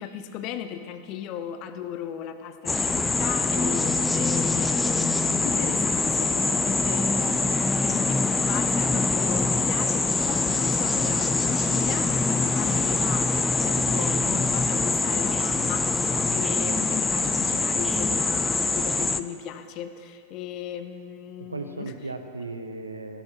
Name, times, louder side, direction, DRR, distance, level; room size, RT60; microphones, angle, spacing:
voice 1, 0.0-21.9, left 9 dB, 40° left, 10 dB, 0.8 m, -36 dB
sound 1, 2.7-19.2, left 3 dB, 10° left, 0.4 m, -24 dB
voice 2, 21.4-23.2, right 3 dB, 80° right, 7 dB, 1.0 m, -36 dB
16.5 x 11.0 x 4.5 m, 2.4 s
figure-of-eight pair, 90°, 0 cm